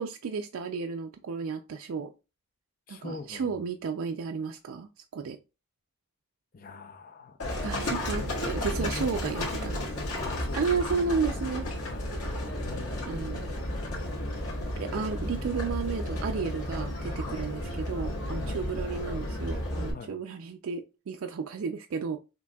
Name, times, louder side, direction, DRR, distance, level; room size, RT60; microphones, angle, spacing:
voice 1, 0.0-2.1 2.9-5.4 7.6-9.8 10.5-11.7 13.1-13.5 14.8-22.2, right 5 dB, 70° right, 0.4 m, -33 dB
voice 2, 2.9-3.6 6.5-7.4 8.1-10.7 11.8-12.2 12.6-13.3 17.2-17.4 18.4-18.6 19.9-20.1, left 4 dB, 40° left, 0.5 m, -43 dB
Livestock farm animals working animals, 7.4-19.9, left 1 dB, 90° left, 1.6 m, -33 dB
5.8 x 2.6 x 2.3 m
head